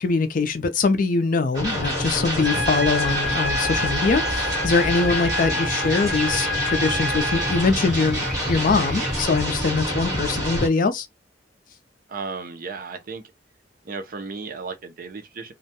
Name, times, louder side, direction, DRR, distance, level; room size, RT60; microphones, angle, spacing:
voice 1, 0.0-11.1, left 4 dB, 50° left, 0.4 m, -23 dB
sound 1, 1.5-10.7, equal, 20° right, 1.3 m, -27 dB
sound 2, 2.4-9.2, right 1 dB, 5° right, 0.6 m, -38 dB
Trumpet, 2.4-7.7, left 1 dB, 70° right, 0.9 m, -28 dB
voice 2, 12.1-13.2 13.8-15.5, right 4 dB, 55° right, 0.5 m, -34 dB
2.3 x 2.1 x 2.7 m
head